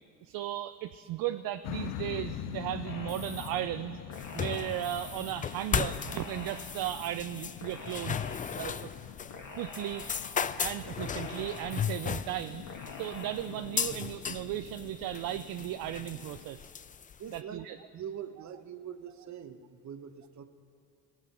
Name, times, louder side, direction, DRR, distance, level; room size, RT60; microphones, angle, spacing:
voice 1, 0.2-4.0 4.3-8.2 8.6-8.9 9.5-10.1 10.4-16.6 17.3-17.8, right 13 dB, 65° right, 11 dB, 0.5 m, -36 dB
sound 1, 1.6-16.4, left 12 dB, 75° left, 0.6 m, -45 dB
sound 2, 2.8-3.5 4.1-5.3 5.8-7.1 7.6-8.8 9.3-10.5 11.0-12.2 12.7-13.3, left 3 dB, 55° left, 2.3 m, -46 dB
sound 3, 4.1-17.4, left 7 dB, 25° left, 0.3 m, -36 dB
voice 2, 17.2-17.6 17.9-20.5, right 8 dB, 50° right, 10 dB, 1.0 m, -43 dB
17.5 x 7.4 x 5.9 m, 2.5 s
supercardioid pair, 75°, 38 cm